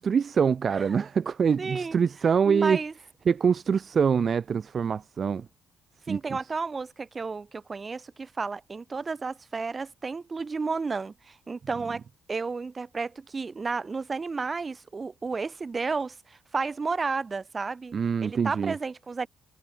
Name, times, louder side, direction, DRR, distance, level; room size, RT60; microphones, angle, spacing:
voice 1, 0.0-2.8 3.2-5.4 6.1-6.2 17.9-18.7, right 6 dB, 45° right, 1.5 m, -24 dB
voice 2, 0.7-1.1 1.6-2.0 2.5-2.9 6.1-12.0 12.3-17.9 18.2-19.3, right 4 dB, 30° right, 5.5 m, -32 dB
cardioid pair, 100°, 0 cm